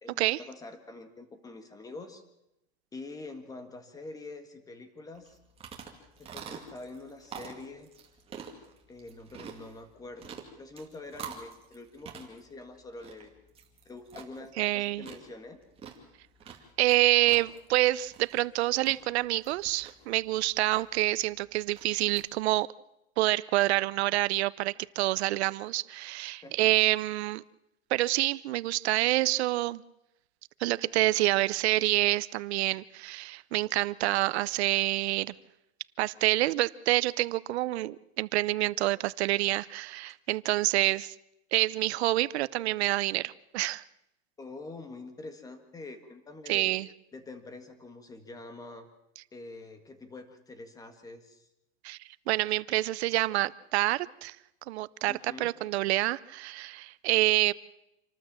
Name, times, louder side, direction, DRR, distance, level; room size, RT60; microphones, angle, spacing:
voice 1, 0.0-2.2 2.9-5.4 6.2-7.9 8.9-13.4 13.9-15.6 26.4-26.7 44.4-46.8 47.1-48.9 49.3-51.5 55.1-55.5, left 3 dB, 10° left, 1.8 m, -45 dB
sound 1, 5.2-22.3, right 6 dB, 15° right, 2.4 m, -48 dB
voice 2, 14.6-15.0 16.8-22.7 23.2-27.4 27.9-29.8 30.6-35.3 36.0-41.1 41.5-43.8 46.5-46.9 51.8-52.0 52.3-54.4 54.7-57.5, right 17 dB, 75° right, 0.8 m, -27 dB
27.0 x 13.0 x 7.5 m
supercardioid pair, 155°, 33 cm